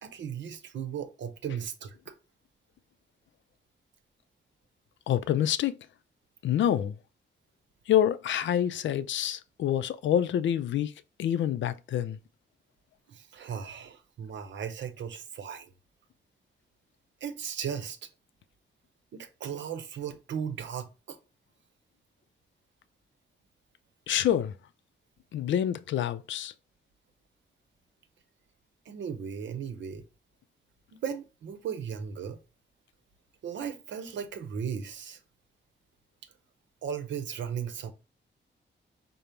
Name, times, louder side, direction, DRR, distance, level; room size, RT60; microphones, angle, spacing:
voice 1, 0.0-2.1 13.1-15.7 17.2-18.0 19.1-21.2 28.9-30.0 30.9-32.4 33.4-35.2 36.8-37.9, right 7 dB, 80° right, 0.7 m, -36 dB
voice 2, 5.1-5.8 6.4-6.9 7.9-10.9 11.2-12.2 24.1-24.5 25.3-26.5, left 10 dB, 90° left, 0.4 m, -27 dB
5.1 x 2.0 x 4.3 m
wide cardioid pair, 170°, 19 cm